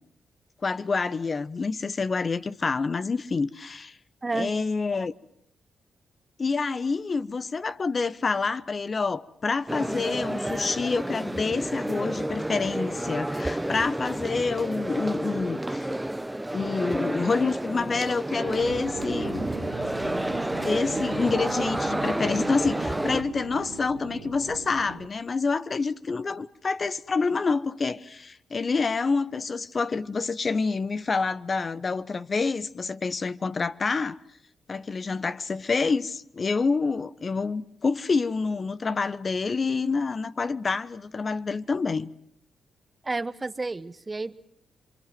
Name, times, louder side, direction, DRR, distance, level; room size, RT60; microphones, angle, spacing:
voice 1, 0.6-4.0 4.3-5.1 6.4-15.9 16.5-19.5 20.6-34.2 34.7-42.1, left 4 dB, 45° left, 1.1 m, -27 dB
voice 2, 4.2-4.5 43.0-44.3, right 3 dB, 30° right, 1.2 m, -30 dB
sound 1, 9.7-23.2, right 1 dB, 10° right, 1.0 m, -30 dB
sound 2, 18.5-25.1, right 10 dB, 90° right, 1.5 m, -41 dB
27.0 x 24.5 x 7.8 m
supercardioid pair, 55°, 0 cm